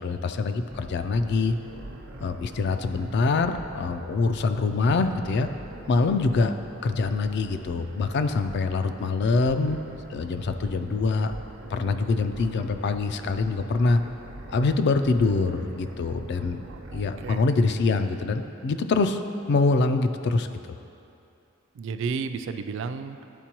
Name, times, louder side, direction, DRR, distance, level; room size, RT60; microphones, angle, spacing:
voice 1, 0.0-1.5 2.2-5.5 5.9-6.5 6.8-9.8 10.1-11.3 11.7-14.0 14.5-16.6 16.9-19.2 19.5-20.5, left 3 dB, 55° left, 8 dB, 0.3 m, -24 dB
sound 1, 0.7-17.4, right 1 dB, 90° right, 0.7 m, -43 dB
voice 2, 16.7-17.4 21.7-23.2, right 5 dB, 65° right, 9 dB, 0.3 m, -32 dB
10.5 x 4.5 x 2.9 m, 2.7 s
head